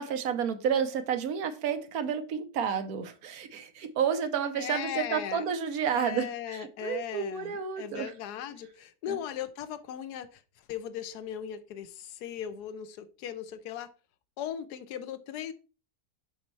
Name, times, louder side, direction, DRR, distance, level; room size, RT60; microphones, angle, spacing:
voice 1, 0.0-8.1 9.1-9.2, right 7 dB, 70° right, 1.2 m, -31 dB
voice 2, 4.6-5.4 5.9-10.4 10.7-13.9 14.4-15.5, left 9 dB, 85° left, 1.2 m, -38 dB
7.1 x 4.3 x 4.5 m
omnidirectional pair, 1.7 m